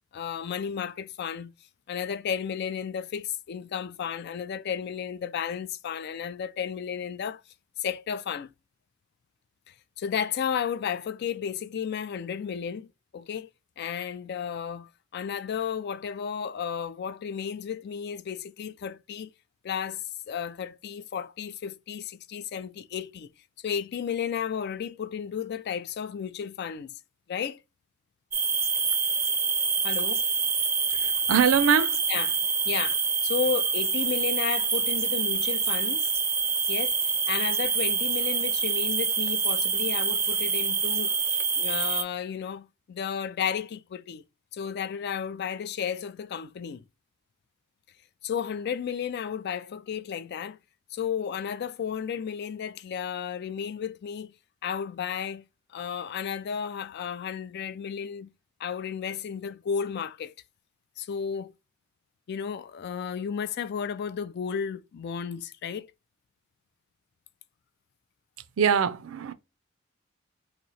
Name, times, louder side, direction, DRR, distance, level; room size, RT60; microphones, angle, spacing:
voice 1, 0.1-1.5 1.9-7.4 7.8-8.5 9.7-13.5 13.8-19.3 19.6-23.3 23.6-26.9 27.3-27.6 29.8-30.2 32.1-32.4 32.7-36.1 36.7-37.0 37.3-44.2 44.5-46.8 48.2-50.6 50.9-54.3 54.6-55.4 55.7-58.3 58.6-60.3 61.0-61.5 62.3-65.9, left 7 dB, 50° left, 0.3 m, -33 dB
sound 1, 28.3-42.0, right 5 dB, 10° right, 0.5 m, -26 dB
voice 2, 30.9-32.0 68.6-69.3, right 7 dB, 70° right, 0.4 m, -23 dB
3.0 x 2.6 x 4.1 m
head